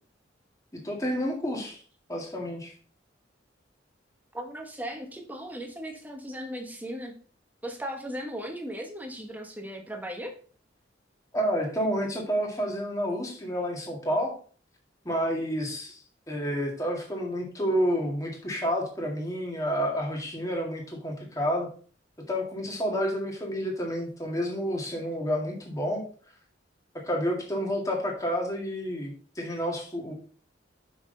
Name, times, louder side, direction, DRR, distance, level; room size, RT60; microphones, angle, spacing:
voice 1, 0.8-1.8 2.1-2.7 11.3-14.3 15.1-16.0 16.3-21.7 22.3-26.0 26.9-30.1, equal, 20° left, 0 dB, 2.0 m, -29 dB
voice 2, 4.3-7.1 7.6-10.3, equal, 10° right, 3 dB, 1.3 m, -37 dB
6.2 x 5.9 x 3.9 m, 0.42 s
head